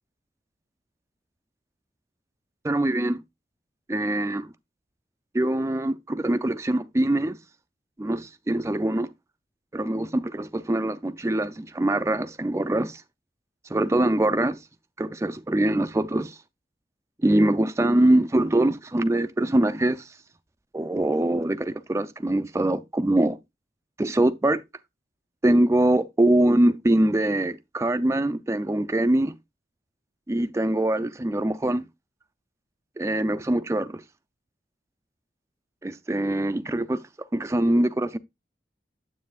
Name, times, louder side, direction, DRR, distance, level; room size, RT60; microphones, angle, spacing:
voice 1, 2.6-3.2 3.9-4.5 5.3-7.4 8.0-9.1 9.7-13.0 13.7-14.6 15.0-16.4 17.2-20.1 20.7-23.4 24.0-24.6 25.4-29.4 30.3-31.8 33.0-34.0 35.8-37.0 37.3-38.2, right 1 dB, 15° right, 0.4 m, -23 dB
9.5 x 7.5 x 2.4 m
head